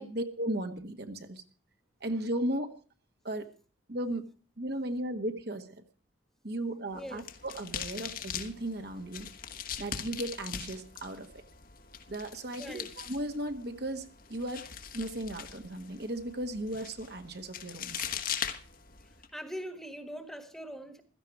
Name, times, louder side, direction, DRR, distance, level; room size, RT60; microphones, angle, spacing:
voice 1, 0.0-1.4 2.0-2.7 3.2-3.5 3.9-5.8 6.4-9.3 9.8-11.4 12.1-14.6 14.9-18.1, right 1 dB, 55° right, 6 dB, 1.5 m, -36 dB
sound 1, 6.9-19.3, left 8 dB, 45° left, 1.2 m, -41 dB
voice 2, 6.9-7.3 12.6-12.9 19.3-21.0, equal, ahead, 8 dB, 1.5 m, -42 dB
16.0 x 13.5 x 4.8 m, 0.38 s
head